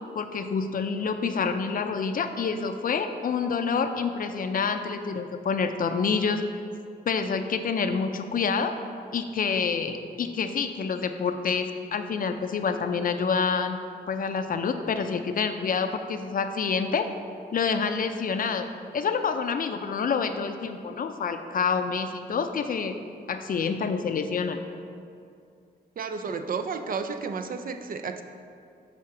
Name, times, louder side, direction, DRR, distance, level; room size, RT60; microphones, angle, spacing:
voice 1, 0.2-6.4 7.1-8.7 9.1-13.8 14.1-17.1 17.5-18.7 18.9-22.9 23.3-24.6, left 5 dB, 55° left, 8 dB, 0.5 m, -27 dB
voice 2, 26.0-28.2, right 5 dB, 55° right, 7 dB, 0.5 m, -32 dB
7.5 x 3.6 x 5.9 m, 2.4 s
cardioid pair, 95°, 17 cm